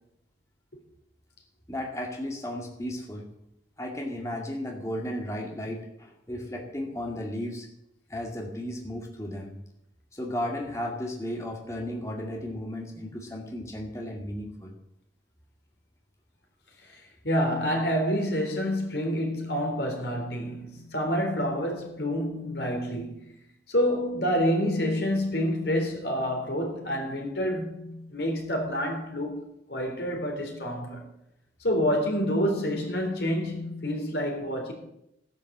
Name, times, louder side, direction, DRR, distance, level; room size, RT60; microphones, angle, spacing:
voice 1, 1.7-3.3 3.8-7.7 8.1-9.5 10.1-14.7, left 1 dB, 15° left, 2.2 m, -34 dB
voice 2, 16.8-23.2 23.7-29.4 29.7-31.1 31.6-34.7, equal, 70° left, 3.9 m, -28 dB
16.0 x 10.5 x 7.5 m
head